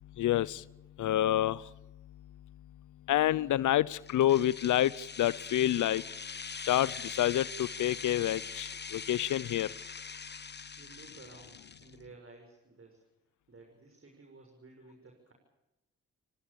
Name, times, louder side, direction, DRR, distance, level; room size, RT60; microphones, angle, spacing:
voice 1, 0.2-0.6 1.0-1.7 3.1-6.1 6.7-9.7, left 13 dB, 80° left, 0.7 m, -28 dB
sound 1, 4.1-11.9, left 5 dB, 35° left, 1.0 m, -43 dB
voice 2, 10.8-13.0 13.5-15.3, right 3 dB, 45° right, 6.7 m, -54 dB
29.5 x 19.0 x 7.0 m
supercardioid pair, 50°, 30 cm